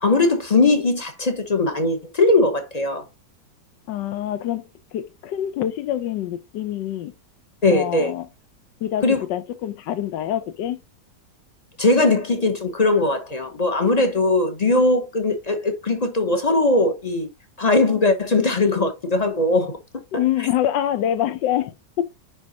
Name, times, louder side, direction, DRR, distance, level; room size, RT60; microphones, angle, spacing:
voice 1, 0.0-3.0 7.6-8.1 9.0-9.2 11.8-17.3 17.6-19.8 20.1-20.2, left 2 dB, 35° left, 0.7 m, -20 dB
voice 2, 3.9-4.7 4.9-7.1 7.7-8.3 8.8-10.8 20.1-22.0, left 11 dB, 80° left, 1.4 m, -25 dB
10.5 x 3.5 x 2.8 m
omnidirectional pair, 1.9 m